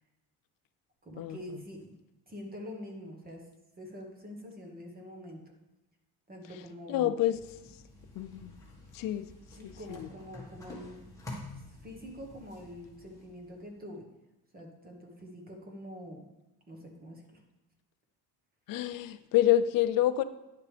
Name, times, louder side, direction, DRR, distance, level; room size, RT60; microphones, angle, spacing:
voice 1, 1.0-1.9 2.3-3.5 3.8-5.4 6.3-7.2 9.5-11.0 11.6-14.0 14.5-16.2 16.7-17.4, equal, 25° right, 2 dB, 1.2 m, -45 dB
voice 2, 6.9-7.4 8.1-8.5 8.9-9.3 9.6-10.1 18.7-20.2, left 12 dB, 60° left, 12 dB, 0.5 m, -28 dB
sound 1, 7.3-13.8, left 2 dB, 10° left, 1.6 m, -49 dB
10.0 x 6.7 x 3.3 m, 1.0 s
cardioid pair, 160°, 39 cm